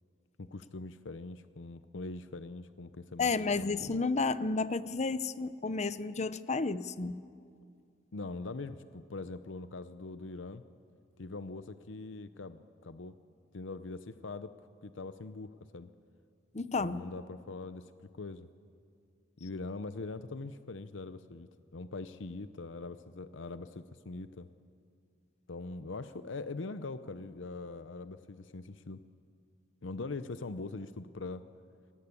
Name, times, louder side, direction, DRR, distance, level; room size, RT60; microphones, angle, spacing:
voice 1, 0.4-3.3 3.6-3.8 8.1-10.6 11.2-13.2 13.5-15.9 16.8-18.5 19.4-24.5 25.5-29.0 29.8-31.4, left 3 dB, 70° left, 12 dB, 0.7 m, -42 dB
voice 2, 3.2-7.2 16.5-17.0, left 4 dB, 35° left, 15 dB, 0.7 m, -32 dB
25.5 x 19.0 x 8.5 m, 2.3 s
head